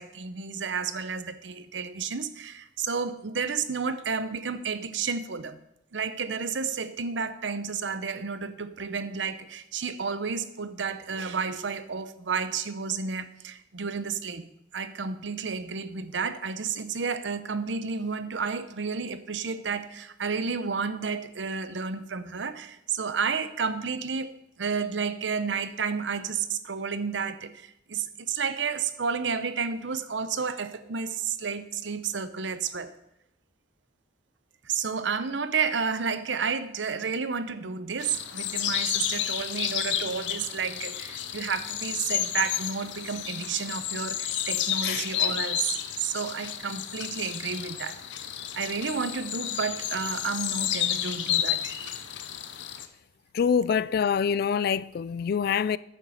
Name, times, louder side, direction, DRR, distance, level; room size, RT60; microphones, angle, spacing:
voice 1, 0.0-5.6 5.9-14.5 14.7-32.9 34.6-48.0 48.5-51.8, right 5 dB, 80° right, 0.8 m, -31 dB
sound 1, 38.0-52.9, left 10 dB, 75° left, 0.7 m, -31 dB
voice 2, 53.3-55.8, left 7 dB, 55° left, 0.3 m, -25 dB
9.9 x 6.8 x 6.3 m
head